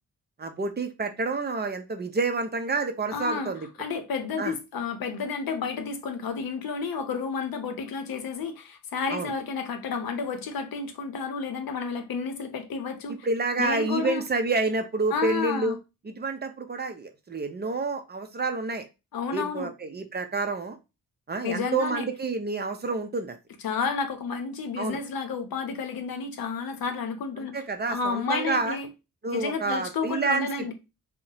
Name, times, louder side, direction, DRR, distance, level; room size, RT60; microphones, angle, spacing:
voice 1, 0.4-3.7 4.4-4.5 9.1-9.3 13.1-15.8 16.0-18.8 19.3-20.8 21.3-23.4 24.8-25.0 27.4-28.8 29.2-30.5, right 3 dB, 30° right, 0.4 m, -28 dB
voice 2, 3.1-3.5 3.8-13.3 13.6-14.2 15.1-15.8 19.1-19.7 21.4-22.1 23.6-27.6 27.9-28.9 29.3-30.7, left 5 dB, 80° left, 0.7 m, -31 dB
2.7 x 2.1 x 3.9 m
wide cardioid pair, 115°, 35 cm